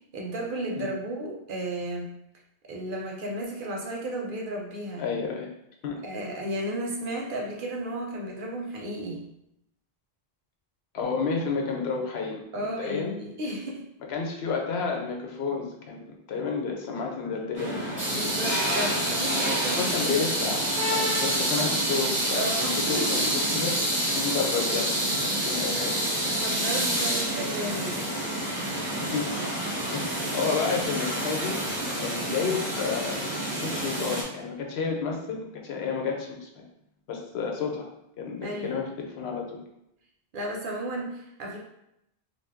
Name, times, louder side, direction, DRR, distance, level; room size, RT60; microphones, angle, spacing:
voice 1, 0.1-2.1 2.7-5.1 6.0-9.3 12.5-13.8 18.1-20.5 22.3-23.4 24.2-24.3 26.4-28.0 38.4-38.8 40.3-41.6, right 1 dB, 60° right, 0 dB, 0.7 m, -33 dB
voice 2, 5.0-5.5 5.8-5.9 10.9-13.1 14.1-17.8 19.7-20.6 20.9-23.7 24.1-26.1 29.0-29.2 29.9-31.6 32.0-33.2 33.5-36.6 37.1-37.9 38.2-39.6, left 5 dB, 80° left, 1 dB, 0.9 m, -31 dB
sound 1, 17.5-34.2, right 1 dB, 15° left, 0.7 m, -28 dB
2.7 x 2.2 x 3.4 m, 0.81 s
omnidirectional pair, 1.0 m